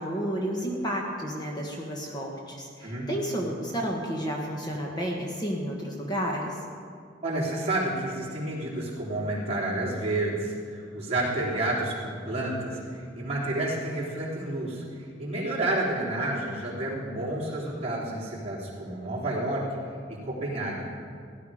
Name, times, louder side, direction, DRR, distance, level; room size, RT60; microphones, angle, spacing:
voice 1, 0.0-6.6, equal, 25° left, -1 dB, 1.4 m, -31 dB
voice 2, 2.8-3.1 7.2-14.8 15.2-19.8 20.1-20.8, right 1 dB, 35° right, -6 dB, 3.4 m, -30 dB
16.5 x 11.5 x 5.0 m, 2.2 s
head